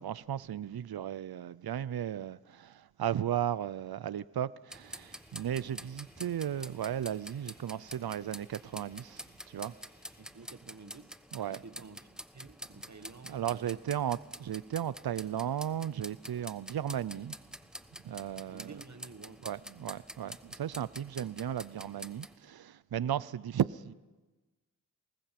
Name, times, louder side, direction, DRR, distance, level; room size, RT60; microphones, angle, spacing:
voice 1, 0.0-9.7 11.3-11.6 13.3-17.3 18.0-18.8 19.4-23.9, right 10 dB, 70° right, 0.6 m, -35 dB
sound 1, 4.7-22.4, equal, ahead, 1.0 m, -48 dB
sound 2, 4.8-10.2, left 1 dB, 25° left, 6.5 m, -66 dB
voice 2, 10.2-11.1 11.5-14.0 18.5-19.4, right 4 dB, 45° right, 1.5 m, -51 dB
25.0 x 20.0 x 5.9 m
cardioid pair, 40°, 38 cm